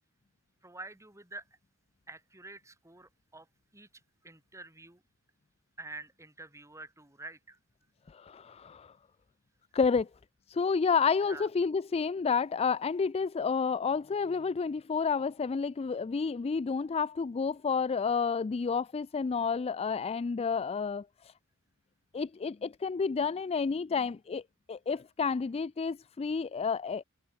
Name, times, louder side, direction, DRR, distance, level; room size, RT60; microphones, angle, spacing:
voice 1, 0.6-1.5 2.1-3.5 3.7-3.9 4.2-5.0 5.8-7.6 11.2-11.5, right 2 dB, 15° right, 4.0 m, -47 dB
voice 2, 8.1-8.9 9.7-10.1 10.5-21.3 22.1-24.4 24.7-27.0, left 5 dB, 25° left, 0.3 m, -30 dB
head